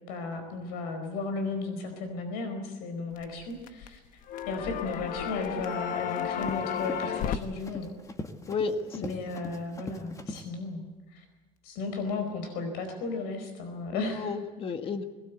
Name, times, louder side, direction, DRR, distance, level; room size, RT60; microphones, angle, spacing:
voice 1, 0.1-4.0 4.5-7.9 8.9-10.8 11.1-11.2 11.6-14.3, left 3 dB, 85° left, 6 dB, 4.6 m, -35 dB
sound 1, 3.2-3.9 4.3-7.4, left 9 dB, 55° left, 1.2 m, -33 dB
Run, 5.6-10.5, left 2 dB, 20° left, 1.9 m, -41 dB
voice 2, 8.5-9.2 13.9-15.0, left 4 dB, 35° left, 7 dB, 1.9 m, -32 dB
22.0 x 19.5 x 8.3 m, 1.3 s
cardioid pair, 125°, 16 cm